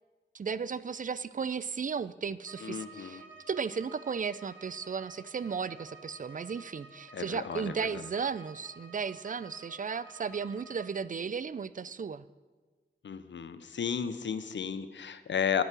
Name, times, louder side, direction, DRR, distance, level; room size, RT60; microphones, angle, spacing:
voice 1, 0.3-12.2, right 6 dB, 45° right, 16 dB, 0.4 m, -35 dB
Bowed string instrument, 2.4-11.0, right 3 dB, 85° right, 1.2 m, -52 dB
voice 2, 2.6-3.2 7.1-8.0 13.0-15.6, left 7 dB, 75° left, 12 dB, 0.5 m, -33 dB
9.3 x 5.5 x 6.1 m, 1.3 s
cardioid pair, 40°, 19 cm